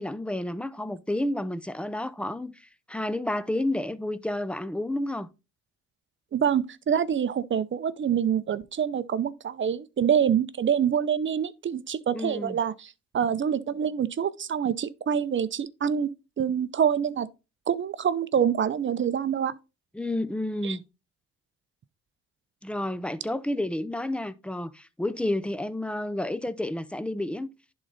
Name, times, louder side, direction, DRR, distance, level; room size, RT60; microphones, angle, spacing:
voice 1, 0.0-5.3 12.1-12.6 19.9-20.8 22.6-27.5, left 1 dB, 5° left, 0.6 m, -30 dB
voice 2, 6.3-16.1 16.4-17.3 17.7-19.5 20.6-20.8, right 8 dB, 40° right, 0.6 m, -26 dB
11.0 x 4.0 x 4.0 m
cardioid pair, 90°, 30 cm